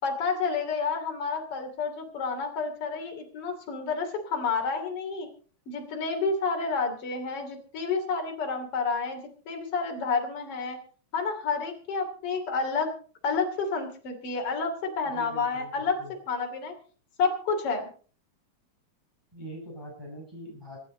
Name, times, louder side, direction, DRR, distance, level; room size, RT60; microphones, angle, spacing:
voice 1, 0.0-5.3 5.7-10.8 11.1-12.9 13.2-16.0 16.3-16.7 17.2-17.9, left 4 dB, 50° left, 3 dB, 3.7 m, -29 dB
voice 2, 15.1-16.1 19.3-20.8, equal, 5° right, -2 dB, 6.1 m, -43 dB
25.5 x 9.7 x 4.0 m, 0.41 s
omnidirectional pair, 3.5 m